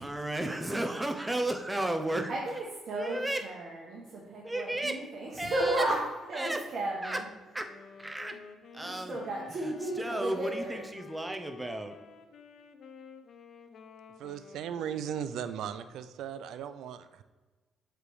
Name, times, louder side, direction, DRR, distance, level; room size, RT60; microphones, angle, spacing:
voice 1, 0.0-2.3 2.9-3.4 4.4-5.0 5.4-5.8 6.3-6.6 7.0-7.2 7.5-7.7 8.0-8.3 8.7-9.2 9.6-12.0, right 1 dB, 10° right, 5 dB, 0.7 m, -33 dB
voice 2, 2.8-6.0 6.3-7.3 8.8-10.8, right 1 dB, 60° right, -3 dB, 1.3 m, -34 dB
Wind instrument woodwind instrument, 7.6-15.6, left 6 dB, 65° left, 0.6 m, -51 dB
voice 3, 14.2-17.2, right 9 dB, 80° right, 12 dB, 0.4 m, -37 dB
7.5 x 3.3 x 4.8 m, 1.3 s
cardioid pair, 90°, 0 cm